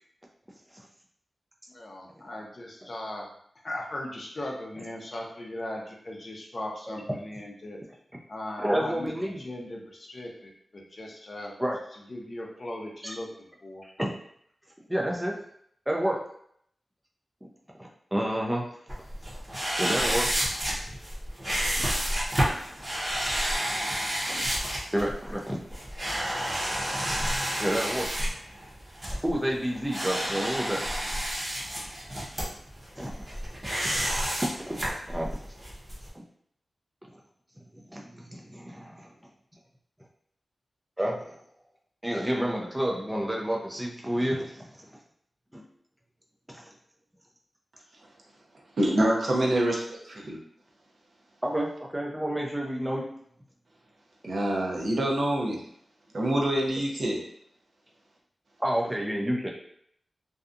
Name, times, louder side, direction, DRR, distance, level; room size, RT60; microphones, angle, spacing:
voice 1, 1.7-3.3 3.6-7.8 8.3-11.5 12.1-13.8, left 1 dB, 45° left, -1 dB, 0.5 m, -38 dB
voice 2, 8.6-9.4 11.6-11.8 13.0-13.1 13.8-14.1 14.9-15.3 15.9-16.2 17.8-18.7 19.8-20.3 21.6-21.8 22.7-22.8 23.3-23.4 24.2-24.4 24.9-25.6 27.6-28.4 29.2-30.8 33.0-33.1 34.3-34.8 35.1-35.4 36.1-36.2 37.7-39.1 41.0-41.4 42.0-44.9 45.5-45.6 46.5-46.7 51.4-53.1 58.6-59.5, equal, 10° right, -1 dB, 0.4 m, -30 dB
sound 1, 18.9-36.1, equal, 25° right, 0.8 m, -30 dB
voice 3, 48.8-50.4 54.2-55.6 56.1-57.2, right 1 dB, 60° right, -1 dB, 0.6 m, -26 dB
2.6 x 2.2 x 2.5 m, 0.68 s
wide cardioid pair, 95°, 0 cm